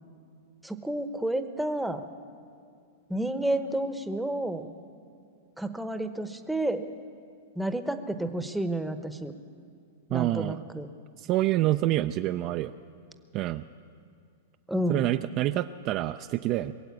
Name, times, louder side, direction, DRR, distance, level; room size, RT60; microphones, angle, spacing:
voice 1, 0.6-2.0 3.1-4.7 5.6-6.9 7.6-9.3 10.1-10.9 14.7-15.1, right 1 dB, 5° right, 9 dB, 0.8 m, -30 dB
voice 2, 10.1-10.6 11.2-12.7 13.3-13.7 14.9-16.7, right 15 dB, 40° right, 9 dB, 0.3 m, -27 dB
22.0 x 7.8 x 8.4 m, 2.3 s
hypercardioid pair, 130°, 0 cm